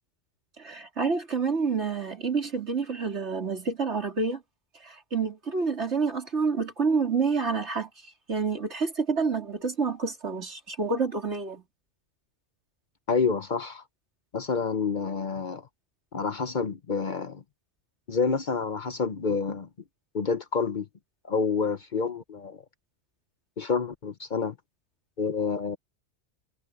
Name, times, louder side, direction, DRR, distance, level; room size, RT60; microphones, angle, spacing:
voice 1, 0.6-4.4 4.8-7.9 8.3-11.6, right 4 dB, 70° right, 3.6 m, -28 dB
voice 2, 13.1-13.8 14.3-15.7 16.1-17.4 18.1-19.7 20.1-20.9 21.3-22.6 23.6-24.5 25.2-25.8, left 5 dB, 45° left, 0.9 m, -28 dB
omnidirectional pair, 1.2 m